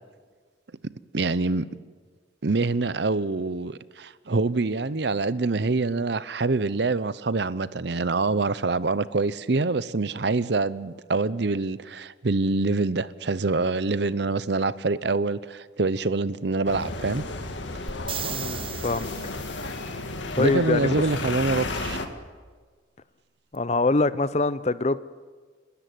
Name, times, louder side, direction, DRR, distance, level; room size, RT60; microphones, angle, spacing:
voice 1, 1.1-1.7 2.4-17.2 20.4-22.0, right 3 dB, 60° right, 0.7 m, -25 dB
sound 1, 16.7-22.1, left 2 dB, 75° left, 1.9 m, -33 dB
sound 2, 17.9-19.7 23.5-23.6, right 8 dB, 30° right, 0.8 m, -35 dB
voice 2, 18.3-19.1 20.4-20.9 23.5-25.0, left 3 dB, 35° left, 0.6 m, -24 dB
29.0 x 13.0 x 9.3 m
head